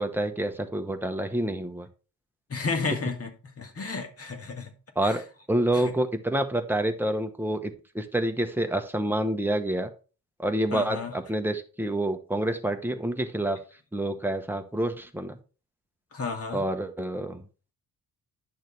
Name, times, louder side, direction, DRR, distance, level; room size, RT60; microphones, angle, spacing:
voice 1, 0.0-1.9 5.0-5.2 5.5-9.9 10.4-13.6 13.9-15.4 16.5-17.4, right 1 dB, 5° right, 0.9 m, -28 dB
voice 2, 2.5-3.3 3.6-4.7 5.0-5.2 5.7-5.9 10.7-11.2 16.1-16.7, left 4 dB, 40° left, 1.9 m, -32 dB
10.5 x 6.4 x 3.2 m
wide cardioid pair, 140°, 35 cm